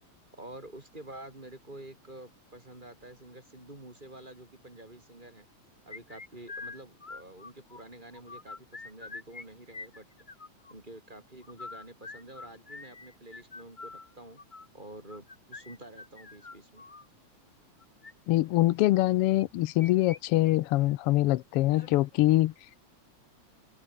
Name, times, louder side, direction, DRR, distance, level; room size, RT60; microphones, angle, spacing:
voice 1, 0.4-5.5 5.9-10.1 10.7-14.4 14.7-16.9, right 1 dB, 15° right, 4.3 m, -48 dB
sound 1, 5.9-7.8 8.1-9.4 9.7-10.7 11.4-17.1 17.8-18.1 19.4-20.2 20.5-20.6 21.0-21.1 21.7-22.1, left 3 dB, 25° left, 1.1 m, -45 dB
voice 2, 18.3-22.5, left 16 dB, 85° left, 1.3 m, -24 dB
omnidirectional pair, 3.4 m